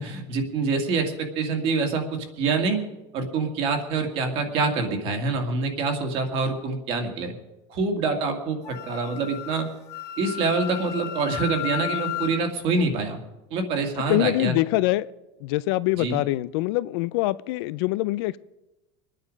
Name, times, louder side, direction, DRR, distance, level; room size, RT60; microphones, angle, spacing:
voice 1, 0.0-2.8 3.1-7.3 7.7-9.7 10.2-13.2 13.5-14.6 16.0-16.2, right 4 dB, 40° right, 4 dB, 2.1 m, -26 dB
Wind instrument woodwind instrument, 8.6-12.4, left 13 dB, 20° left, 1.9 m, -33 dB
voice 2, 14.1-15.1 15.4-18.4, left 18 dB, 55° left, 17 dB, 0.4 m, -24 dB
24.5 x 9.9 x 5.2 m, 1.0 s
cardioid pair, 175°, 15 cm